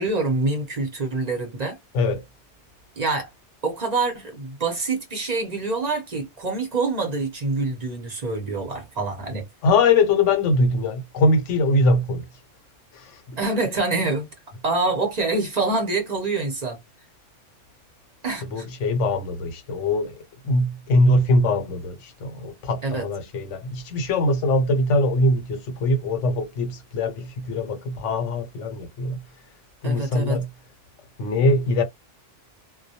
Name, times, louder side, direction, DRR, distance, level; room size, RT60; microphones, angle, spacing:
voice 1, 0.0-1.8 3.0-3.3 3.6-9.4 13.4-14.3 14.6-16.8 18.2-18.7 22.8-23.0 29.8-30.4, right 3 dB, 40° right, 0.7 m, -26 dB
voice 2, 9.6-12.3 12.9-13.4 18.3-20.2 20.4-29.2 29.8-30.5 31.2-31.8, left 2 dB, 85° left, 1.0 m, -22 dB
2.2 x 2.1 x 2.7 m
omnidirectional pair, 1.2 m